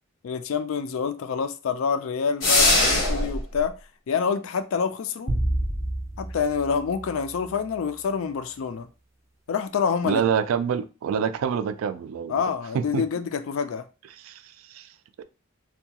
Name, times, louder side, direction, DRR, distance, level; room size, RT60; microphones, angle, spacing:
voice 1, 0.2-3.7 4.1-5.3 6.2-8.9 9.5-10.2 12.3-13.8, left 6 dB, 75° left, 0.4 m, -27 dB
sound 1, 2.4-3.4, left 2 dB, 90° left, 1.0 m, -20 dB
sound 2, 5.3-7.8, right 1 dB, 15° right, 0.5 m, -29 dB
voice 2, 10.0-12.4 12.7-13.0 14.2-14.4 14.7-14.9, right 7 dB, 75° right, 0.3 m, -26 dB
2.8 x 2.2 x 2.8 m
head